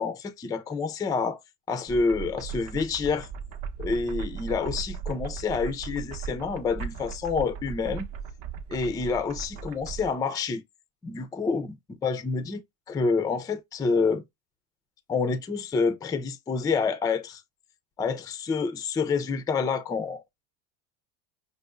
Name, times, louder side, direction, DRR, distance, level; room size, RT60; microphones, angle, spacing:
voice 1, 0.0-1.4 1.7-3.3 3.8-8.1 8.7-10.6 11.0-11.8 12.0-14.2 15.1-17.4 18.0-20.4, left 4 dB, 10° left, 0.3 m, -28 dB
sound 1, 1.9-10.1, right 6 dB, 60° right, 0.8 m, -37 dB
5.1 x 2.0 x 2.2 m
supercardioid pair, 100°, 35 cm